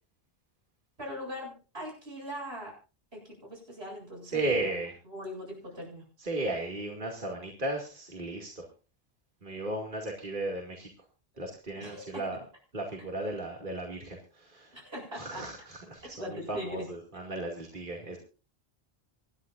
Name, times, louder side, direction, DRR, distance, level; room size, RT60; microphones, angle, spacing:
voice 1, 1.0-2.7 3.1-4.7 5.0-6.0 11.8-12.2 14.7-15.5 16.2-16.9, equal, 85° right, -1 dB, 8.5 m, -40 dB
voice 2, 4.3-4.9 6.2-8.6 9.4-10.9 11.4-12.4 12.7-14.2 14.5-14.7 15.1-18.2, right 2 dB, 55° right, 0 dB, 2.6 m, -35 dB
26.0 x 11.0 x 2.6 m, 0.35 s
omnidirectional pair, 1.0 m